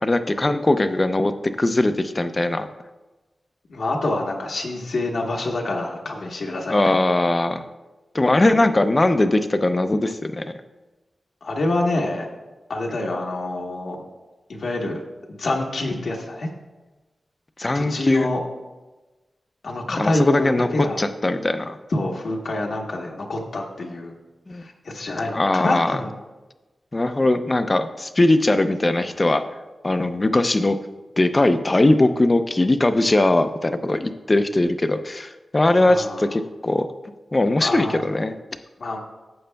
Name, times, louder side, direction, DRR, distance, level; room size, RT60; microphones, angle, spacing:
voice 1, 0.0-1.3 1.6-2.7 6.7-7.6 8.1-10.4 17.6-18.3 19.9-20.7 21.0-21.8 24.5-24.6 25.3-26.0 26.9-29.4 29.8-30.8 31.2-36.9 37.3-38.3, left 2 dB, 25° left, 9 dB, 0.5 m, -20 dB
voice 2, 3.7-6.9 11.4-12.3 12.7-14.0 14.5-15.0 15.3-16.5 17.7-18.4 19.6-21.0 21.9-24.1 24.5-26.1 35.8-36.3 37.6-38.0 38.8-39.0, left 2 dB, 70° left, 0 dB, 1.2 m, -26 dB
14.0 x 7.8 x 2.3 m, 1.1 s
wide cardioid pair, 140°, 0 cm